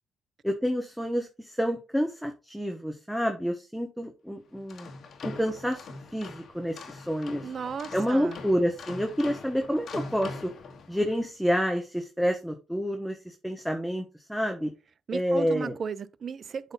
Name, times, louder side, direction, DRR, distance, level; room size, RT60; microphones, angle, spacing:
voice 1, 0.4-4.9 5.2-7.5 7.9-10.5 10.9-14.7 15.1-15.7, equal, ahead, 1.1 m, -29 dB
sound 1, 4.5-11.2, left 4 dB, 60° left, 1.5 m, -42 dB
voice 2, 7.4-8.4 15.1-16.7, right 6 dB, 50° right, 0.5 m, -35 dB
7.8 x 4.1 x 4.0 m
cardioid pair, 75°, 0 cm